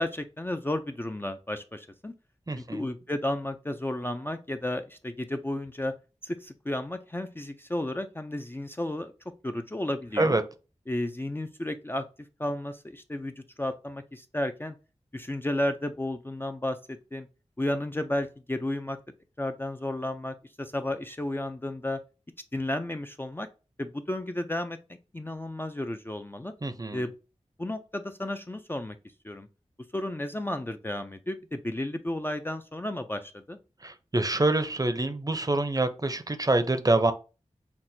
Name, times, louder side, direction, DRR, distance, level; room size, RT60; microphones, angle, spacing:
voice 1, 0.0-2.1 2.6-5.9 6.2-9.1 9.4-10.4 10.9-12.0 12.4-14.8 15.1-17.3 17.6-19.0 19.4-22.0 22.5-23.5 23.8-24.8 25.1-26.5 26.9-27.1 27.6-29.0 29.2-29.5 29.9-33.6, left 1 dB, 15° left, 0.4 m, -32 dB
voice 2, 2.5-2.9 10.2-10.4 26.6-27.0 33.8-37.1, right 2 dB, 30° right, 0.6 m, -26 dB
5.8 x 2.1 x 2.6 m
cardioid pair, 40°, 12 cm